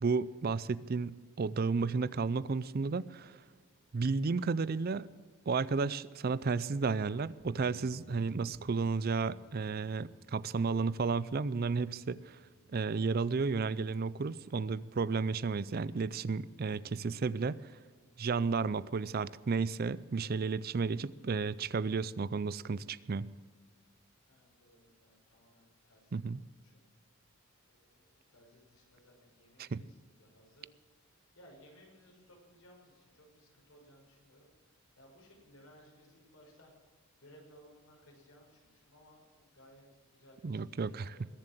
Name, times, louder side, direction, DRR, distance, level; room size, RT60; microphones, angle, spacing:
voice 1, 0.0-3.4 3.9-5.1 5.5-12.4 12.7-17.7 18.2-23.3 26.1-26.4 29.6-29.8 40.4-41.1, right 4 dB, 45° right, 19 dB, 0.4 m, -33 dB
sound 1, 7.4-13.6, left 1 dB, 5° right, 3.4 m, -61 dB
voice 2, 24.3-26.8 27.6-36.7 37.2-41.3, equal, 85° left, -1 dB, 5.7 m, -61 dB
21.5 x 7.6 x 7.5 m, 1.5 s
head